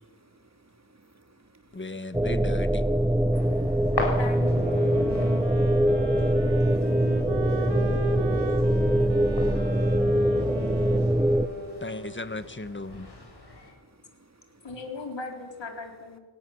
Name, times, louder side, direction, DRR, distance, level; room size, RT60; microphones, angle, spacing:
voice 1, 0.2-2.3 3.0-3.1 3.5-4.0 5.1-5.6 6.0-12.0 12.9-13.2 13.7-14.7, right 2 dB, 40° right, 6 dB, 3.2 m, -60 dB
voice 2, 1.7-2.8 11.8-13.1, left 2 dB, 25° left, 11 dB, 1.8 m, -36 dB
sound 1, 2.1-11.5, equal, 5° right, 1.3 m, -23 dB
sound 2, 3.3-13.7, left 2 dB, 65° left, 7.4 m, -40 dB
voice 3, 4.2-4.7 14.6-16.2, left 3 dB, 90° left, 2 dB, 4.0 m, -38 dB
sound 3, 4.5-12.4, right 3 dB, 85° right, 3.6 m, -37 dB
29.0 x 18.0 x 7.3 m, 1.3 s
wide cardioid pair, 50°, 43 cm